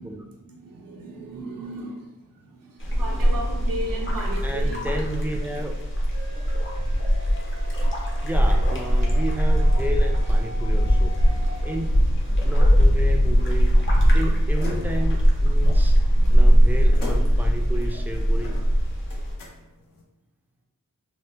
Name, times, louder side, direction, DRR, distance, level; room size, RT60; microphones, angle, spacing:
voice 1, 0.0-4.9 6.5-6.6 10.1-10.3, right 1 dB, 90° right, 0 dB, 0.6 m, -36 dB
sound 1, 2.8-19.4, equal, 35° left, 0.7 m, -20 dB
voice 2, 4.4-5.8 8.2-11.2 11.6-11.9 12.4-13.7 14.1-18.6, right 1 dB, 5° right, 1 dB, 0.4 m, -32 dB
sound 2, 6.1-11.8, equal, 55° left, 1.2 m, -43 dB
sound 3, 10.3-20.0, left 2 dB, 75° left, 0.6 m, -43 dB
2.7 x 2.0 x 3.2 m, 0.93 s
wide cardioid pair, 60°, 33 cm